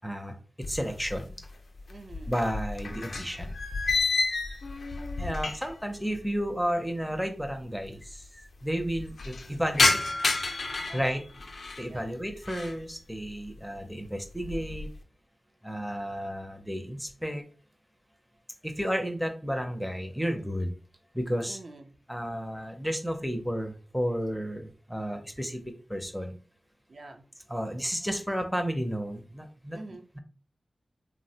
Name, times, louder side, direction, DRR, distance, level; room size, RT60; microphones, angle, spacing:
voice 1, 0.0-0.3 0.7-1.3 2.3-3.6 5.2-10.0 10.9-11.3 11.8-14.9 15.6-17.4 18.6-20.7 21.1-21.6 22.1-25.6 25.9-26.3 27.5-29.8, equal, ahead, 5 dB, 0.4 m, -32 dB
sound 1, 0.6-1.5 1.8-5.9 6.2-6.3 7.1-7.2 7.4-7.5 7.8-8.3 8.7-11.9 12.3-12.8 13.3-13.7 14.1-15.0, left 3 dB, 75° left, 0.4 m, -30 dB
voice 2, 1.9-2.4 10.9-11.2 11.9-12.1 21.4-21.9 26.9-27.3 29.7-30.1, right 2 dB, 60° right, 4 dB, 0.4 m, -46 dB
3.2 x 2.0 x 2.7 m, 0.37 s
wide cardioid pair, 85°, 0 cm